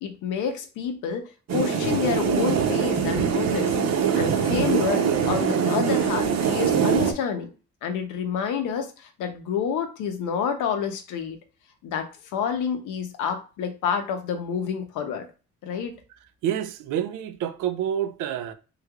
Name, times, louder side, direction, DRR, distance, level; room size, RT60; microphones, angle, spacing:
voice 1, 0.0-3.7 4.1-7.5 7.8-11.4 11.8-15.3 15.6-15.9, left 7 dB, 90° left, 0.8 m, -28 dB
sound 1, 1.5-7.1, right 7 dB, 60° right, 0.8 m, -23 dB
voice 2, 16.4-18.5, right 10 dB, 90° right, 0.5 m, -28 dB
3.3 x 3.3 x 2.4 m
cardioid pair, 90°, 30 cm